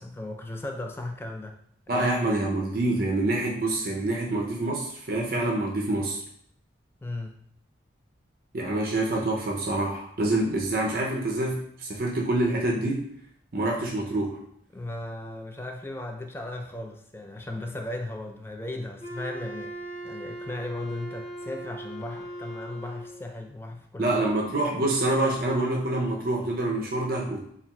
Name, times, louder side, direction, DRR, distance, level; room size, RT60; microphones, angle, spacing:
voice 1, 0.0-1.6 1.9-2.6 7.0-7.4 14.7-19.7 20.0-24.2, left 2 dB, 10° left, 3 dB, 0.3 m, -36 dB
voice 2, 1.9-6.2 8.5-13.1 13.5-14.4 24.0-27.5, right 2 dB, 50° right, -1 dB, 0.5 m, -26 dB
Wind instrument woodwind instrument, 19.0-23.3, right 1 dB, 35° left, 1.4 m, -39 dB
7.0 x 2.4 x 2.2 m, 0.68 s
head